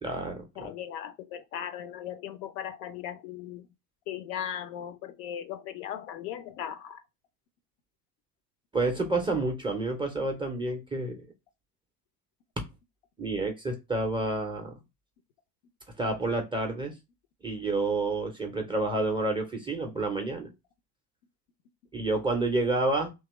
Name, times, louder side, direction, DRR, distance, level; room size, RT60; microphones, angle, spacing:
voice 1, 0.0-0.7 8.7-11.3 13.2-14.7 16.0-16.9 17.4-20.5 21.9-23.1, right 2 dB, 10° right, 0.4 m, -29 dB
voice 2, 0.6-3.7 4.1-7.0 9.3-9.4, left 10 dB, 50° left, 0.5 m, -38 dB
2.8 x 2.3 x 3.0 m
figure-of-eight pair, 70°, 50 cm